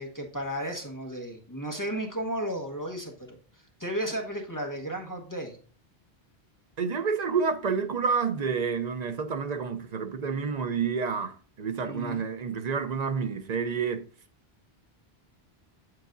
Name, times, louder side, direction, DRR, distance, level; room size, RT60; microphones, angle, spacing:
voice 1, 0.0-3.1 3.8-5.6 11.8-12.2, equal, 20° left, 1.2 m, -33 dB
voice 2, 6.8-14.1, right 5 dB, 45° right, 0.7 m, -29 dB
7.9 x 7.7 x 2.6 m
omnidirectional pair, 1.0 m